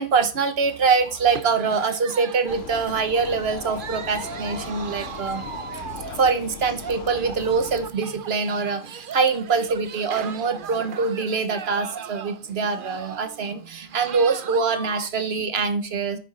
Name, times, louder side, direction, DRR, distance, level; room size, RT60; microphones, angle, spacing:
voice 1, 0.0-5.4 6.2-16.2, right 5 dB, 75° right, 9 dB, 1.2 m, -24 dB
sound 1, 0.7-15.1, right 7 dB, 60° right, 0.8 m, -38 dB
Vehicle, 2.5-7.9, left 10 dB, 90° left, 0.9 m, -39 dB
9.8 x 8.1 x 4.2 m, 0.35 s
omnidirectional pair, 1.0 m